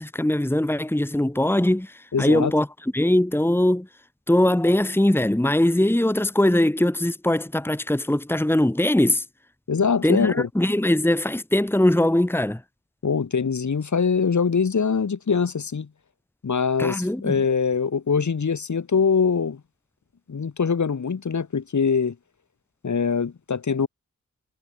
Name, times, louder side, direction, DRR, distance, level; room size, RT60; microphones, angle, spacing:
voice 1, 0.0-2.7 2.9-3.9 4.3-9.3 10.0-12.6 16.8-17.4, left 1 dB, 5° left, 2.0 m, -21 dB
voice 2, 2.1-2.5 9.7-10.5 13.0-15.9 16.4-19.6 20.3-22.2 22.8-23.9, left 5 dB, 65° left, 4.2 m, -23 dB
cardioid pair, 60°, 31 cm